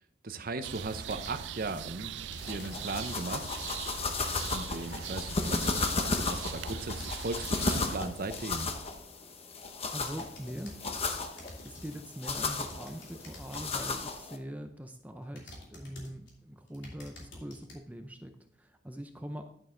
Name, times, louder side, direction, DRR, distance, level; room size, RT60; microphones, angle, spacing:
voice 1, 0.2-2.1 2.4-3.5 4.5-8.7, right 3 dB, 55° right, 9 dB, 0.8 m, -37 dB
sound 1, 0.6-1.9 2.3-9.0 9.6-11.1 11.4-12.0 12.4-14.0 14.6-14.7 15.4-16.3 16.7-17.8, left 1 dB, 85° left, 2.9 m, -49 dB
sound 2, 0.6-8.0, right 9 dB, 80° right, 0.4 m, -42 dB
sound 3, 2.4-14.4, left 3 dB, 35° left, 0.9 m, -35 dB
voice 2, 9.9-10.8 11.6-19.5, equal, 10° right, 6 dB, 0.5 m, -43 dB
11.0 x 6.3 x 3.8 m, 0.71 s
head